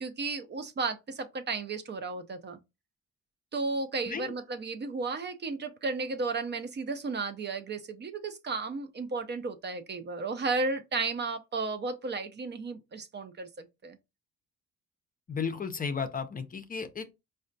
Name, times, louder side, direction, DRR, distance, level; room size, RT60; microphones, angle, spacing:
voice 1, 0.0-2.6 3.5-14.0, right 3 dB, 35° right, 0.5 m, -34 dB
voice 2, 15.3-17.1, left 5 dB, 30° left, 0.5 m, -34 dB
4.8 x 2.2 x 2.6 m
cardioid pair, 90°, 30 cm